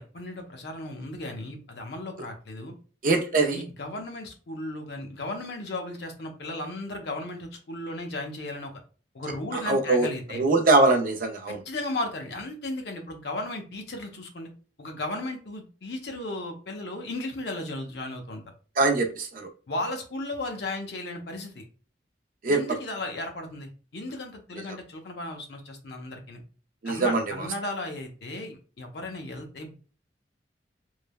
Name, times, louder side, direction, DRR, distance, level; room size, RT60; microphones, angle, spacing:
voice 1, 0.0-2.7 3.5-8.7 9.1-10.4 11.5-14.5 14.8-18.4 19.7-21.6 22.5-26.4 26.8-29.7, left 2 dB, 60° left, 3 dB, 0.6 m, -35 dB
voice 2, 3.0-3.6 9.5-10.1 10.3-11.6 18.8-19.5 22.4-22.8 24.6-24.7 26.8-27.5, right 2 dB, 45° right, 4 dB, 0.4 m, -23 dB
3.1 x 2.1 x 2.2 m, 0.38 s
head